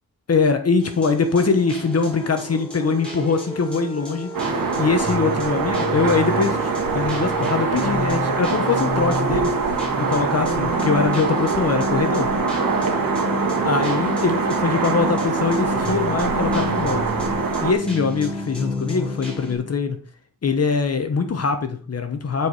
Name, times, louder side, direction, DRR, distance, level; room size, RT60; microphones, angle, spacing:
voice 1, 0.3-12.3 13.6-17.0 17.6-20.0 20.4-22.5, left 4 dB, 50° left, 7 dB, 1.0 m, -22 dB
sound 1, 0.8-19.5, left 2 dB, 5° left, 3.8 m, -31 dB
sound 2, 2.8-7.7, right 1 dB, 25° left, 2.5 m, -35 dB
sound 3, 4.3-17.7, right 4 dB, 85° right, 1.8 m, -23 dB
9.9 x 4.8 x 4.8 m, 0.40 s
wide cardioid pair, 135°, 33 cm